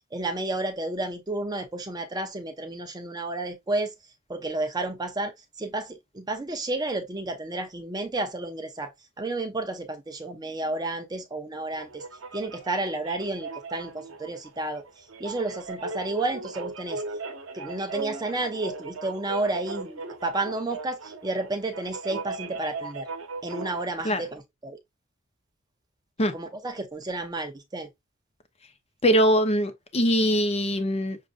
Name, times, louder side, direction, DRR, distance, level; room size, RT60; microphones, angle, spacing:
voice 1, 0.1-3.9 4.3-8.9 9.2-12.0 12.3-17.0 17.5-23.1 23.4-24.8 26.3-27.9, right 2 dB, 20° right, 0.6 m, -31 dB
sound 1, 11.7-23.8, right 3 dB, 75° right, 0.9 m, -38 dB
voice 2, 29.0-31.2, equal, 30° left, 0.7 m, -22 dB
6.4 x 2.5 x 2.4 m
head